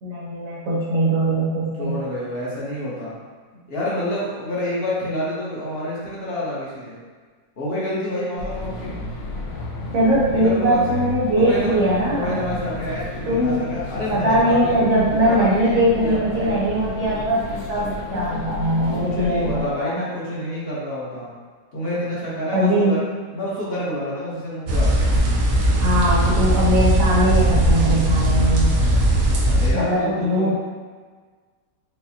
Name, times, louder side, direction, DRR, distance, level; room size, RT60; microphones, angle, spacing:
voice 1, 0.0-2.0 9.9-12.6 13.3-13.6 14.1-20.1 22.5-23.0 25.8-28.7 29.7-30.5, right 1 dB, 60° right, -7 dB, 1.2 m, -21 dB
voice 2, 1.6-3.1 3.7-7.0 7.6-8.9 10.3-11.0 11.4-11.8 12.1-14.8 15.3-16.7 19.1-21.3 21.7-23.0 23.3-25.2 29.4-30.5, left 1 dB, 45° left, -7 dB, 1.0 m, -28 dB
sound 1, 8.4-19.6, left 3 dB, 70° left, 0.7 m, -32 dB
sound 2, 24.7-29.7, right 1 dB, 90° right, 1.3 m, -18 dB
4.9 x 2.1 x 2.7 m, 1.5 s
omnidirectional pair, 1.7 m